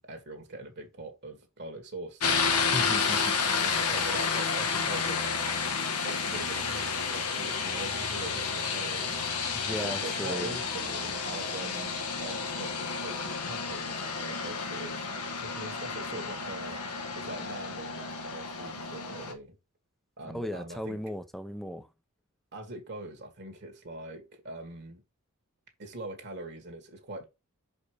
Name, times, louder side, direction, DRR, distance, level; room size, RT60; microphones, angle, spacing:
voice 1, 0.0-2.2 3.6-5.4 6.0-9.2 9.8-15.0 15.3-19.6 20.2-21.0 22.5-25.0 25.8-27.2, right 2 dB, 50° right, 1.8 m, -42 dB
sound 1, 2.2-19.3, left 5 dB, 85° left, 1.6 m, -31 dB
voice 2, 2.6-3.3 9.5-10.6 20.3-21.9, equal, ahead, 0.7 m, -36 dB
5.9 x 5.3 x 4.8 m
head